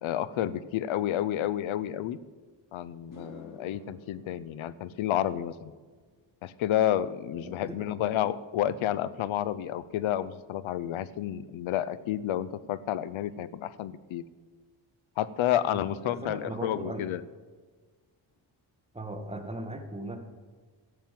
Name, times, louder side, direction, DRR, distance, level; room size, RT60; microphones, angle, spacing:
voice 1, 0.0-2.2 2.7-5.7 6.4-14.2 15.2-17.2, left 11 dB, 85° left, 17 dB, 0.7 m, -30 dB
sound 1, 2.4-2.5 2.9-11.4 11.7-12.1 15.7-15.8 17.5-17.6 17.9-18.0 18.3-18.8, left 2 dB, 40° left, 4.4 m, -57 dB
voice 2, 16.0-17.0 18.9-20.2, right 1 dB, 15° right, 4 dB, 1.9 m, -38 dB
13.0 x 7.4 x 7.7 m, 1.4 s
cardioid pair, 75°, 47 cm